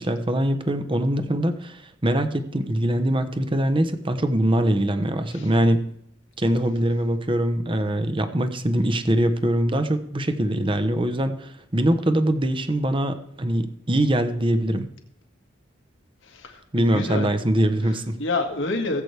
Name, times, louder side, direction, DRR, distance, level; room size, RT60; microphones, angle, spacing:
voice 1, 0.0-5.8 6.4-14.9 16.7-18.2, right 1 dB, 30° right, 8 dB, 0.9 m, -23 dB
voice 2, 16.2-17.3 18.2-19.0, left 2 dB, 90° left, 3 dB, 1.9 m, -28 dB
18.0 x 8.1 x 3.3 m, 0.71 s
head